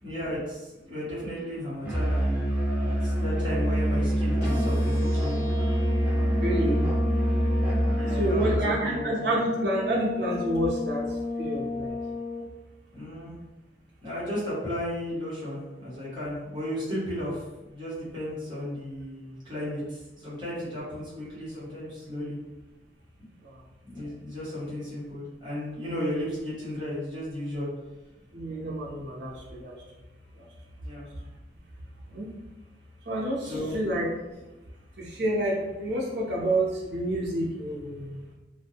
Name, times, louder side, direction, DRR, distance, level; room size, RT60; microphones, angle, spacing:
voice 1, 0.0-2.5 2.8-5.4 7.9-9.3 12.9-13.3 14.0-17.4 17.7-22.4 23.8-27.7 30.8-31.1 33.4-33.7, left 1 dB, 25° right, -10 dB, 1.1 m, -34 dB
Musical instrument, 1.8-8.7, equal, 10° right, 0.6 m, -25 dB
sound 1, 4.4-12.4, left 3 dB, 45° left, 0.9 m, -34 dB
voice 2, 6.4-6.9 8.1-11.0 11.4-11.9 28.3-29.7 32.1-32.3 33.1-34.1 35.0-38.3, right 1 dB, 65° right, -2 dB, 0.6 m, -28 dB
2.5 x 2.2 x 2.8 m, 1.0 s
head